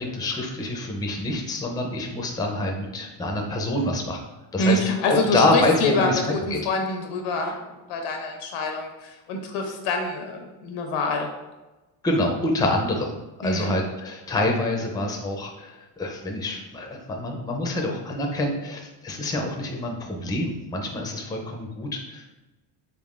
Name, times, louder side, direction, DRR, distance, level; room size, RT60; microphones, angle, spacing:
voice 1, 0.0-4.2 4.5-6.2 6.5-6.6 12.0-22.3, left 1 dB, 10° left, 1 dB, 0.4 m, -26 dB
voice 2, 4.6-7.5 7.9-11.3 13.4-13.7, left 2 dB, 85° left, 3 dB, 0.9 m, -25 dB
3.7 x 3.6 x 2.4 m, 1.1 s
cardioid pair, 110°, 48 cm